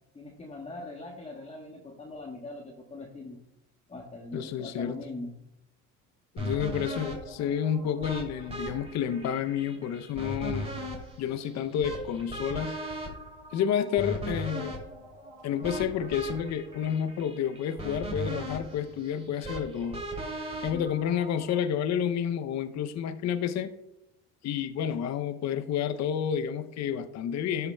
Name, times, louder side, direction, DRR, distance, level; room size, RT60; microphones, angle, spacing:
voice 1, 0.1-3.4 3.9-5.3 20.7-20.9, left 2 dB, 15° left, 1 dB, 1.1 m, -41 dB
voice 2, 4.3-5.0 6.3-10.7 11.2-12.8 13.5-14.7 15.4-20.0 20.6-23.7 24.4-27.7, left 8 dB, 45° left, 10 dB, 0.6 m, -30 dB
sound 1, 6.4-21.6, right 1 dB, 15° right, 2.6 m, -38 dB
13.0 x 5.7 x 2.2 m, 0.86 s
supercardioid pair, 85°, 37 cm